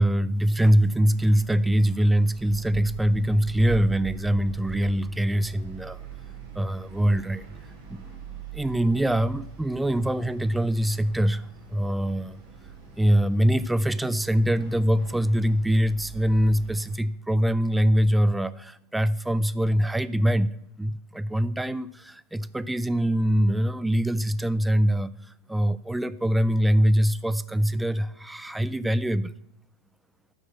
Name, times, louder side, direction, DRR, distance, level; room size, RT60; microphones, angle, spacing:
voice 1, 0.0-6.0 6.5-7.5 7.9-8.0 8.5-12.4 13.0-29.3, equal, 5° right, 18 dB, 0.4 m, -23 dB
sound 1, 1.1-17.0, right 7 dB, 45° right, 2.9 m, -42 dB
12.5 x 4.7 x 8.3 m, 0.78 s
figure-of-eight pair, 90°, 0 cm